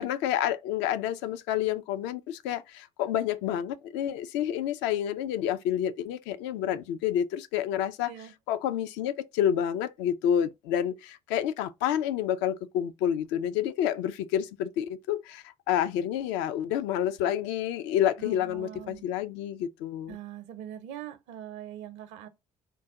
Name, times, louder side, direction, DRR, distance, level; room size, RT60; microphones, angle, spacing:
voice 1, 0.0-8.1 8.5-20.2, left 10 dB, 65° left, 0.5 m, -29 dB
voice 2, 18.2-19.0 20.1-22.3, right 10 dB, 65° right, 0.6 m, -42 dB
3.9 x 2.2 x 3.6 m
hypercardioid pair, 55°, 20 cm